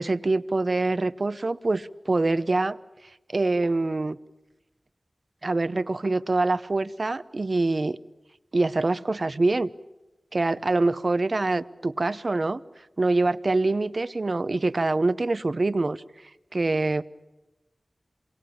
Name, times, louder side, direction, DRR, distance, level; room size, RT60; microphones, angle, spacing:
voice 1, 0.0-2.8 3.3-4.2 5.4-8.0 8.5-9.7 10.3-12.6 13.0-16.0 16.5-17.0, right 2 dB, 55° right, 14 dB, 1.0 m, -25 dB
27.5 x 23.5 x 8.8 m, 1.0 s
wide cardioid pair, 45°, 0 cm